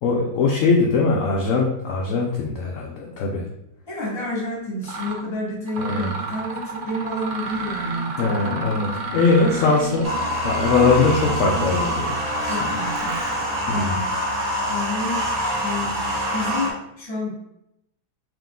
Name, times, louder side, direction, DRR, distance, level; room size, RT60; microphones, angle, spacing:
voice 1, 0.0-3.4 5.8-6.1 8.2-10.0 10.4-12.1 12.4-12.7 13.7-14.1, left 4 dB, 65° left, 0 dB, 0.8 m, -21 dB
voice 2, 3.9-8.6 9.4-9.7 12.4-13.4 14.7-15.2 15.6-17.3, left 1 dB, 20° left, -4 dB, 1.1 m, -30 dB
Mechanisms, 4.2-4.3 4.8-5.2 5.7-13.5, right 4 dB, 75° right, 0.4 m, -32 dB
sound 1, 10.0-16.7, equal, 25° right, 0.9 m, -25 dB
3.7 x 2.9 x 3.6 m, 0.81 s
omnidirectional pair, 1.8 m